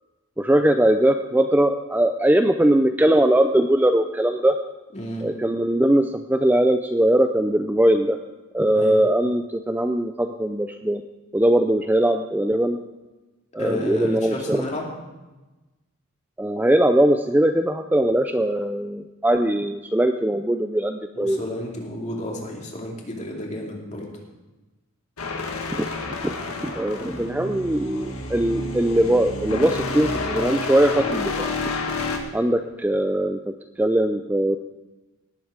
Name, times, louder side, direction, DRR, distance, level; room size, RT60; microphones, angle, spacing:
voice 1, 0.4-4.5 5.2-8.2 8.5-11.0 11.3-12.8 13.5-14.6 16.4-21.4 25.7-25.8 26.6-31.5 32.3-33.4 33.8-34.6, right 1 dB, 10° right, 6 dB, 0.4 m, -20 dB
voice 2, 4.9-5.3 8.7-9.0 13.6-14.9 21.1-24.1, left 1 dB, 30° left, -1 dB, 2.5 m, -31 dB
sound 1, 25.2-32.2, left 3 dB, 85° left, 1.8 m, -29 dB
18.0 x 8.1 x 5.1 m, 1.1 s
head